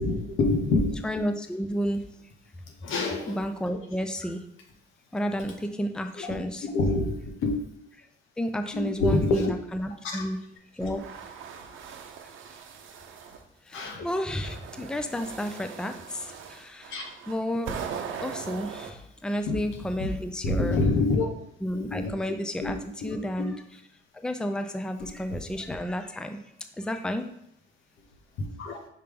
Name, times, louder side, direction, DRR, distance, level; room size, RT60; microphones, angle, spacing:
voice 1, 0.0-1.0 2.8-3.4 6.2-6.4 6.6-7.6 8.7-9.5 10.0-10.2 10.8-10.9 13.7-14.1 16.9-17.0 19.5-19.6 20.0-20.1 20.4-21.2 21.7-22.1 22.6-23.5 25.0-25.1 28.4-28.8, left 2 dB, 85° left, 2 dB, 1.3 m, -27 dB
voice 2, 1.0-2.1 3.3-4.4 5.1-6.7 8.4-10.4 10.7-11.0 13.7-17.0 17.3-20.8 21.6-22.8 23.0-23.6 24.1-26.4 26.8-27.3, equal, 5° left, 7 dB, 0.5 m, -31 dB
sound 1, 10.8-13.4 14.0-18.9, right 7 dB, 80° right, 0.8 m, -40 dB
5.7 x 3.4 x 5.2 m, 0.72 s
cardioid pair, 90°, 20 cm